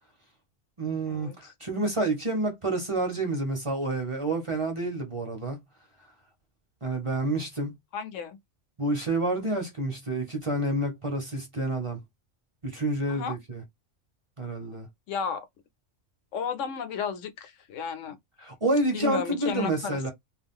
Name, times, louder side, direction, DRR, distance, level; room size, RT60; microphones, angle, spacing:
voice 1, 0.8-5.6 6.8-7.7 8.8-12.0 12.6-13.6 14.4-14.9 18.4-20.1, right 2 dB, 30° right, 0.7 m, -29 dB
voice 2, 7.9-8.4 13.1-13.4 15.1-15.5 16.3-18.2 18.9-20.1, left 6 dB, 85° left, 1.0 m, -33 dB
2.5 x 2.2 x 3.5 m
omnidirectional pair, 1.3 m